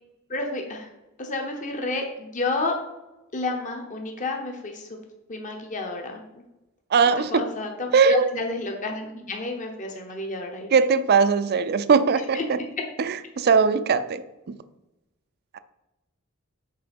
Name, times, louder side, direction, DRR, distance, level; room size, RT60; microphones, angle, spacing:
voice 1, 0.3-0.9 1.2-2.7 3.3-5.0 5.3-6.2 7.2-10.7 12.3-12.4, left 2 dB, 35° left, 2 dB, 0.9 m, -30 dB
voice 2, 6.9-7.5 7.9-8.3 10.7-12.6 13.0-14.6 15.5-15.6, right 5 dB, 50° right, 13 dB, 0.4 m, -20 dB
6.6 x 4.7 x 5.3 m, 1.0 s
head